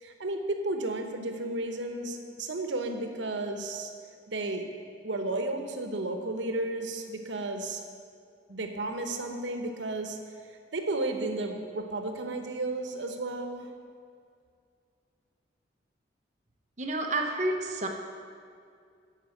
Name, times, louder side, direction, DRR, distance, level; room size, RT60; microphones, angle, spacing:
voice 1, 0.0-3.9 4.3-4.6 5.0-7.8 8.5-10.2 10.7-13.7, right 2 dB, 85° right, 5 dB, 1.0 m, -33 dB
voice 2, 16.8-17.9, right 2 dB, 40° right, 1 dB, 1.0 m, -29 dB
11.0 x 5.2 x 7.8 m, 2.3 s
head